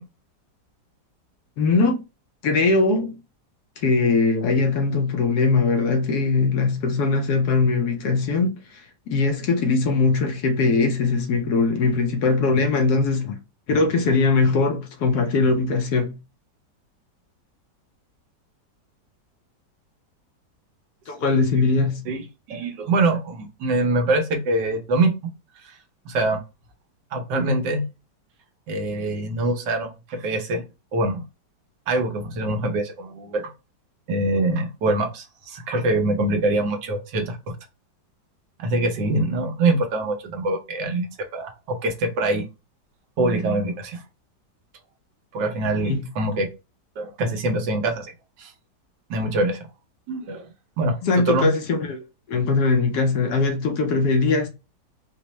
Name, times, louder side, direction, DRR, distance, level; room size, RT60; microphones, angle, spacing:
voice 1, 1.6-2.0 2.4-3.2 3.8-13.4 13.7-16.2 21.1-22.1 45.9-46.1 51.0-52.0 52.3-54.5, left 4 dB, 70° left, 1.1 m, -21 dB
voice 2, 22.5-25.1 25.6-25.7 26.0-26.4 27.1-27.8 28.7-30.6 30.9-31.2 31.9-33.4 34.1-37.4 38.6-42.4 43.2-44.0 45.3-46.5 47.0-48.1 48.4-48.5 49.1-49.7 50.1-50.5 50.8-51.5, right 2 dB, 85° right, 1.5 m, -24 dB
4.4 x 2.0 x 3.0 m
omnidirectional pair, 1.9 m